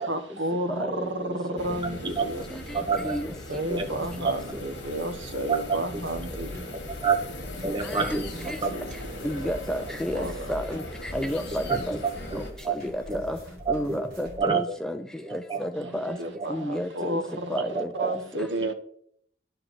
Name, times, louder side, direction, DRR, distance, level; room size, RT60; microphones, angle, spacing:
voice 1, 0.0-2.5 3.5-7.0 8.4-9.3 10.1-10.5 11.2-11.3 15.7-18.7, right 1 dB, 75° right, 1.2 m, -32 dB
voice 2, 0.8-1.1 1.5-1.6 3.0-3.3 7.9-8.2 8.5-8.6 9.2-10.8 11.1-12.0 12.7-13.4 13.7-15.0 15.3-16.2 16.5-17.2 17.5-17.9, equal, 5° left, 0.5 m, -31 dB
sound 1, 1.6-12.5, left 1 dB, 65° left, 1.8 m, -40 dB
voice 3, 2.7-3.2 3.7-3.9 4.2-4.3 5.5-5.8 7.0-7.2 7.6-8.7 11.7-12.0 12.3-12.7 13.1-13.2 13.7-14.0 14.4-14.8 15.2-15.6 16.3-16.5 17.5-17.6 18.0-18.2, right 5 dB, 25° right, 0.9 m, -27 dB
sound 2, 6.0-14.4, left 1 dB, 55° right, 3.9 m, -43 dB
sound 3, 7.2-13.6, left 1 dB, 45° left, 1.9 m, -47 dB
11.0 x 4.6 x 6.1 m
head